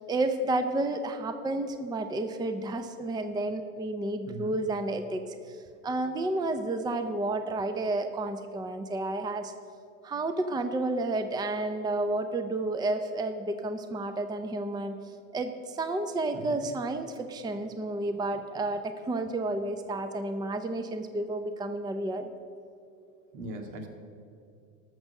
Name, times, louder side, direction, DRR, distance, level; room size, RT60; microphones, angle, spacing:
voice 1, 0.0-9.5 10.0-14.9 15.3-22.3, right 2 dB, 10° right, 8 dB, 0.6 m, -31 dB
voice 2, 23.3-23.9, right 1 dB, 75° right, 3 dB, 2.1 m, -39 dB
13.5 x 6.2 x 6.5 m, 2.7 s
supercardioid pair, 100°, 39 cm